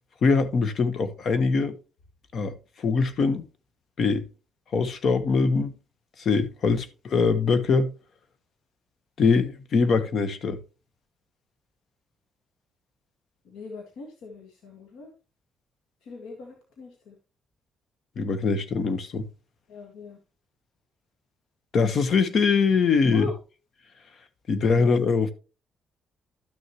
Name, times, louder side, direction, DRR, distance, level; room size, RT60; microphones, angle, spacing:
voice 1, 0.2-1.8 2.3-3.4 4.0-4.3 4.7-5.7 6.2-7.9 9.2-10.6 18.2-19.3 21.7-23.2 24.5-25.3, left 4 dB, 55° left, 1.1 m, -23 dB
voice 2, 13.4-15.1 16.0-17.2 19.7-20.2 23.1-23.3 24.5-24.9, left 4 dB, 85° left, 1.8 m, -40 dB
12.0 x 6.6 x 3.0 m
cardioid pair, 90°, 0 cm